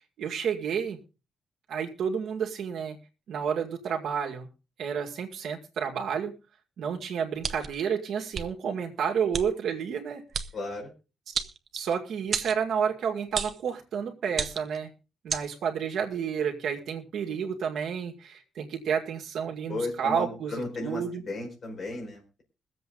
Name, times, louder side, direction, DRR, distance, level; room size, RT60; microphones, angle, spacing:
voice 1, 0.2-1.0 1.7-3.0 3.3-4.5 4.8-6.4 6.8-10.2 11.3-11.4 11.7-14.9 15.2-21.2, right 7 dB, 65° right, 2 dB, 2.1 m, -30 dB
sound 1, 7.4-7.8 8.3-8.5 9.3-9.5 10.3-10.5 11.3-11.9 12.3-12.6 13.3-13.6 14.3-14.8 15.3-15.5, right 6 dB, 40° right, 0.7 m, -31 dB
voice 2, 10.5-10.9 19.7-22.4, left 2 dB, 35° left, 1 dB, 4.4 m, -35 dB
22.0 x 7.9 x 3.8 m, 0.31 s
cardioid pair, 175°, 0 cm